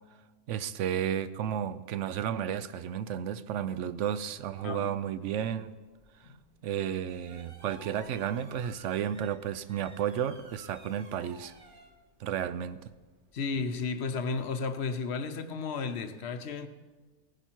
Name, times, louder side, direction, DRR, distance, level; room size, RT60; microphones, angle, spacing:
voice 1, 0.5-5.7 6.2-6.3 6.6-11.5 12.2-12.8, right 9 dB, 65° right, 0.8 m, -32 dB
voice 2, 4.6-5.0 6.2-6.4 13.3-16.7, left 4 dB, 55° left, 0.9 m, -33 dB
sound 1, 5.7-13.9, right 2 dB, 35° right, 1.3 m, -56 dB
18.0 x 10.0 x 4.5 m
omnidirectional pair, 1.5 m